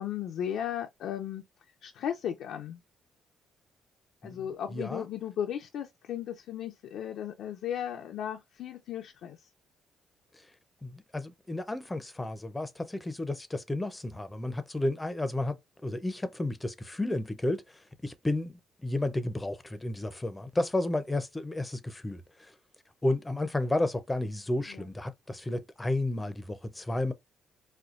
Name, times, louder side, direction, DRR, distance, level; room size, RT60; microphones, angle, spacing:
voice 1, 0.0-1.4 1.8-2.8 4.2-9.5 24.7-24.9, left 10 dB, 80° left, 0.5 m, -36 dB
voice 2, 4.7-5.1 10.8-22.5 23.0-27.1, left 1 dB, 15° left, 0.6 m, -32 dB
4.2 x 2.3 x 2.5 m
cardioid pair, 90°, 0 cm